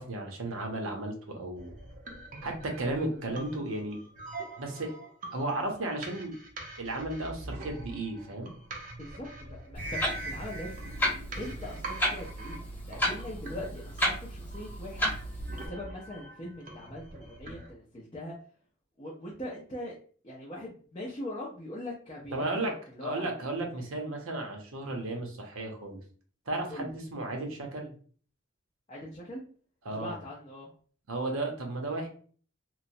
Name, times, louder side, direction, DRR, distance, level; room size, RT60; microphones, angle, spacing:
voice 1, 0.0-1.7 2.4-4.0 4.6-4.9 5.3-6.4 6.8-8.5 22.3-22.7 23.0-26.0 26.5-27.9 29.8-30.1 31.1-32.1, right 2 dB, 75° right, 2 dB, 0.7 m, -34 dB
sound 1, 1.5-17.7, right 2 dB, 40° right, 0.5 m, -43 dB
voice 2, 9.0-10.8 11.4-15.1 15.6-18.4 19.0-20.0 20.2-23.4 26.7-26.9 28.9-29.4 29.9-30.7, left 1 dB, 25° left, -4 dB, 0.4 m, -41 dB
Clock, 9.7-15.7, equal, 10° left, 1.0 m, -33 dB
3.0 x 2.0 x 2.6 m, 0.44 s
head